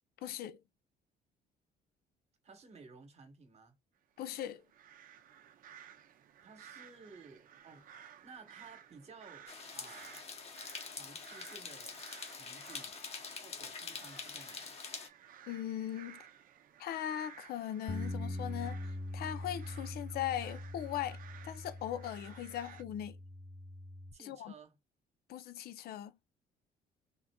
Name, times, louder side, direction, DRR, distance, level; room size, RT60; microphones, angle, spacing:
voice 1, 0.2-0.6 4.2-4.6 15.5-16.2 16.8-18.8 19.1-21.2 21.4-23.2 24.3-24.5 25.3-26.1, left 11 dB, 65° left, 0.6 m, -39 dB
voice 2, 2.4-3.8 6.4-10.3 10.8-12.0 12.3-13.0 13.4-14.8 24.1-24.8, right 4 dB, 40° right, 1.2 m, -56 dB
sound 1, 4.2-22.8, right 9 dB, 55° right, 0.6 m, -56 dB
sound 2, 9.5-15.1, left 5 dB, 40° left, 1.0 m, -45 dB
Bass guitar, 17.9-24.1, left 1 dB, 10° left, 0.3 m, -43 dB
3.8 x 2.5 x 2.2 m
cardioid pair, 110°, 17 cm